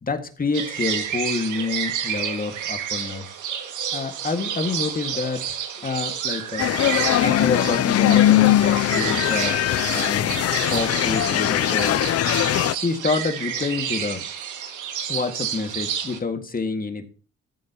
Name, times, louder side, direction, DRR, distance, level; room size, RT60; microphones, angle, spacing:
voice 1, 0.0-3.3 3.9-6.7 7.2-9.6 9.9-12.0 12.7-14.2 15.1-17.1, left 4 dB, 30° left, 7 dB, 1.9 m, -28 dB
sound 1, 0.5-16.2, right 8 dB, 80° right, 2.0 m, -30 dB
sound 2, 6.6-12.7, left 13 dB, 55° left, 0.5 m, -20 dB
14.5 x 7.4 x 2.9 m, 0.40 s
cardioid pair, 90°, 30 cm